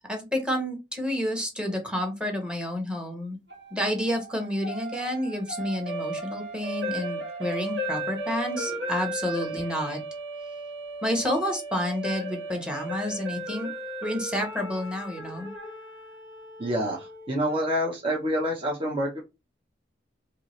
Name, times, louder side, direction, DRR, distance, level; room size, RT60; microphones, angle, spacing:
voice 1, 0.1-3.4 3.7-10.0 11.0-13.7 14.0-15.5, left 1 dB, 5° right, 2 dB, 1.2 m, -29 dB
sound 1, 3.5-17.6, right 1 dB, 85° right, 1.5 m, -36 dB
voice 2, 16.6-17.0 17.3-19.2, equal, 30° right, -3 dB, 1.0 m, -27 dB
4.6 x 2.8 x 3.2 m, 0.25 s
head